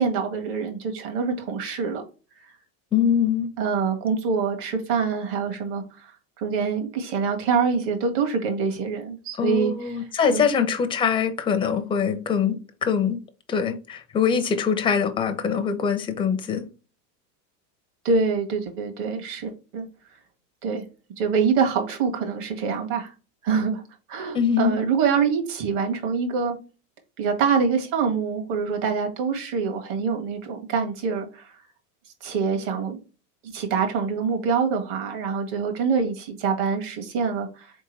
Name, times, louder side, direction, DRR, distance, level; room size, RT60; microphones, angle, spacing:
voice 1, 0.0-2.0 2.4-2.5 3.6-10.4 18.0-19.9 20.6-20.8 21.2-23.1 23.4-23.8 24.1-26.5 27.2-31.6 32.2-33.0 33.5-37.7, right 5 dB, 55° right, 1.7 m, -25 dB
voice 2, 2.9-3.5 9.4-13.2 13.5-16.7 24.3-24.8, left 7 dB, 10° left, 0.4 m, -23 dB
4.2 x 3.6 x 3.2 m
supercardioid pair, 125°, 46 cm